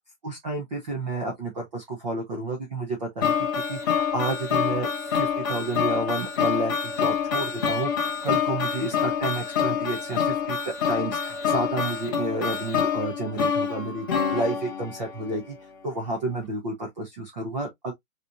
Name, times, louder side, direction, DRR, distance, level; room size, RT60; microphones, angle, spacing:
voice 1, 0.2-3.3 3.7-14.1 14.3-15.6 15.8-17.9, right 2 dB, 30° right, 0.8 m, -31 dB
sound 1, 3.2-15.4, left 7 dB, 15° left, 0.6 m, -26 dB
4.2 x 3.0 x 2.4 m
hypercardioid pair, 165°, 45 cm